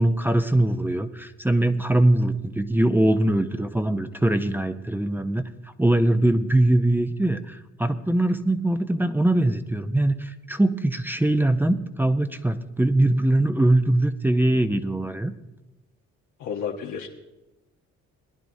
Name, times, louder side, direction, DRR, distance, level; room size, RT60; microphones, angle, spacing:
voice 1, 0.0-5.4 5.8-15.3, right 1 dB, 5° right, 9 dB, 0.5 m, -22 dB
voice 2, 16.4-17.1, left 7 dB, 90° left, 0 dB, 1.0 m, -31 dB
19.5 x 10.5 x 2.7 m, 1.0 s
cardioid pair, 90°, 30 cm